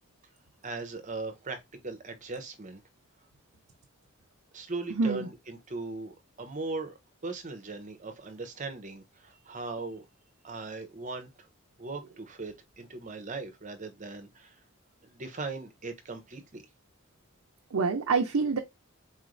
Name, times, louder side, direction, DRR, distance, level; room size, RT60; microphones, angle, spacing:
voice 1, 0.6-2.8 4.5-10.1 10.4-11.3 11.8-14.6 15.0-16.6, right 3 dB, 35° right, 0.7 m, -39 dB
voice 2, 4.9-5.3 17.7-18.6, right 4 dB, 85° right, 0.6 m, -26 dB
4.3 x 3.1 x 2.5 m
head